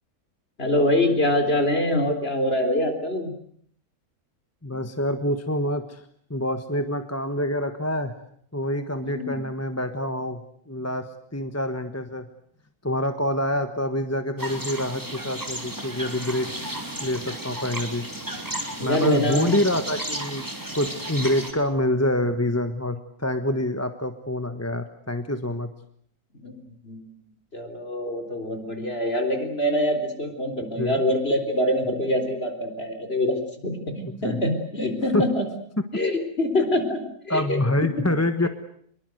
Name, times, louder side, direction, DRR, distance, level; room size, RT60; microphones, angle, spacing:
voice 1, 0.6-3.3 9.0-9.4 18.8-19.5 26.3-27.0 27.5-35.4 35.9-37.9, left 1 dB, 40° left, 6 dB, 4.3 m, -25 dB
voice 2, 4.6-6.0 6.3-8.1 8.5-10.4 10.7-11.0 11.3-12.3 12.8-16.5 17.0-18.0 18.8-20.5 20.7-25.7 30.7-31.0 34.0-34.4 35.1-35.2 37.3-38.5, left 1 dB, 10° left, 8 dB, 1.3 m, -26 dB
sound 1, 14.4-21.5, right 1 dB, 10° right, 3.2 m, -33 dB
25.0 x 22.5 x 7.9 m, 0.64 s
omnidirectional pair, 1.6 m